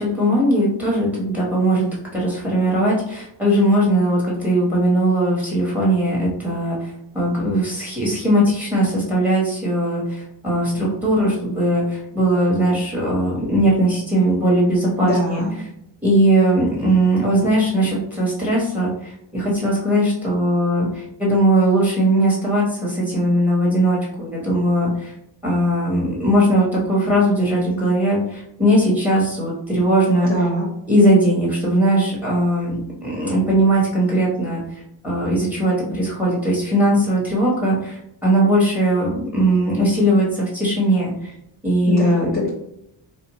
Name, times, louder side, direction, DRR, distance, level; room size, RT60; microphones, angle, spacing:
voice 1, 0.0-15.4 16.0-25.1 25.4-30.3 30.9-41.3 41.6-42.3, right 1 dB, 5° right, -5 dB, 1.1 m, -19 dB
voice 2, 15.0-15.5 30.3-30.7 41.8-42.5, equal, 25° left, -5 dB, 0.9 m, -22 dB
4.2 x 2.1 x 3.0 m, 0.76 s
wide cardioid pair, 175°, 50 cm